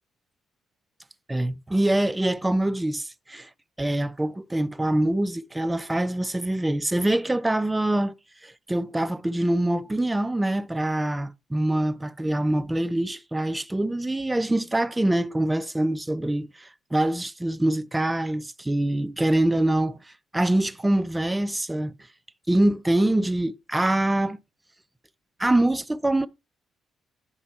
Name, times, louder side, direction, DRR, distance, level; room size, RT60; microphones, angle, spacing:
voice 1, 1.3-3.5 3.8-8.1 8.4-21.9 22.5-24.4 25.4-26.3, right 1 dB, 10° right, 0.5 m, -24 dB
10.0 x 4.5 x 4.3 m
cardioid pair, 90°, 0 cm